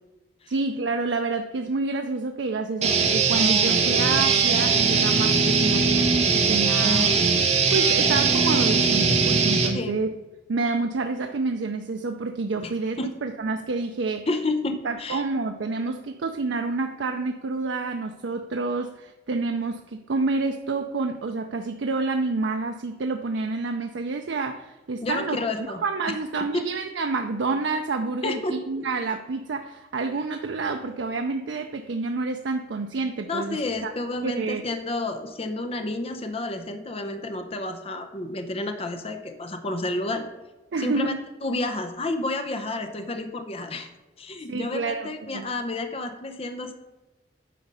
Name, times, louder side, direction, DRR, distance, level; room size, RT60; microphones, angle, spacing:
voice 1, 0.5-7.1 7.7-10.1 10.5-14.3 14.8-25.4 25.8-33.9 34.2-34.6 40.7-41.1 44.5-45.5, right 3 dB, 80° right, 5 dB, 0.5 m, -28 dB
sound 1, 2.8-9.7, right 5 dB, 40° right, 1.3 m, -20 dB
voice 2, 14.3-15.2 25.0-25.8 26.1-26.2 26.5-26.6 28.2-28.9 33.3-40.3 40.8-41.2 41.4-43.9 44.2-46.7, left 2 dB, 35° left, 6 dB, 0.7 m, -30 dB
9.2 x 4.9 x 5.5 m, 1.1 s
head